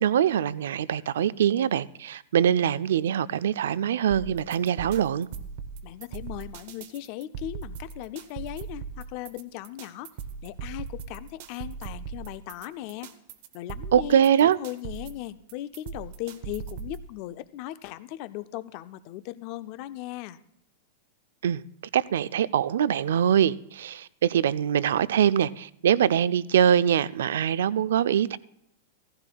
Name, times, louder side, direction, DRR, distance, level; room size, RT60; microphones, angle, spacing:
voice 1, 0.0-5.3 13.9-14.6 21.4-21.6 21.9-28.4, right 9 dB, 75° right, 0.4 m, -23 dB
sound 1, 4.1-17.1, right 6 dB, 45° right, 0.8 m, -39 dB
voice 2, 5.8-10.1 10.4-13.1 13.5-20.4, left 14 dB, 35° left, 0.4 m, -38 dB
16.5 x 15.0 x 2.3 m
supercardioid pair, 175°, 0 cm